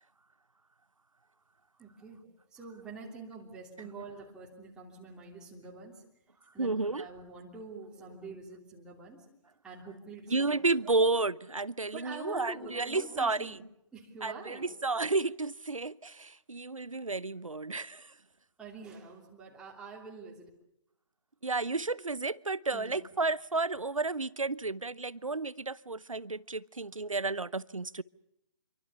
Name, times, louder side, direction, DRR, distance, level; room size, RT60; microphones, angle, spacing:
voice 1, 1.8-6.0 6.5-9.3 9.6-10.9 11.9-13.6 13.9-14.7 18.6-20.5 22.7-23.1, right 4 dB, 5° right, 3.0 m, -46 dB
voice 2, 6.6-7.0 10.3-13.6 14.2-18.1 21.4-28.0, right 3 dB, 80° right, 0.9 m, -32 dB
27.5 x 24.0 x 7.0 m
figure-of-eight pair, 140°, 17 cm